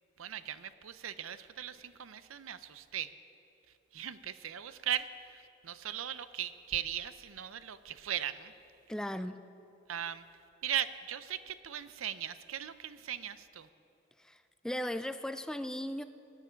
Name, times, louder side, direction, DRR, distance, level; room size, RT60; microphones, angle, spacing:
voice 1, 0.2-3.1 3.9-8.5 9.9-10.2 10.6-13.7, right 10 dB, 85° right, 14 dB, 0.6 m, -38 dB
voice 2, 8.9-9.4 14.2-16.0, equal, 5° left, 11 dB, 0.3 m, -37 dB
21.0 x 9.9 x 5.1 m, 2.9 s
head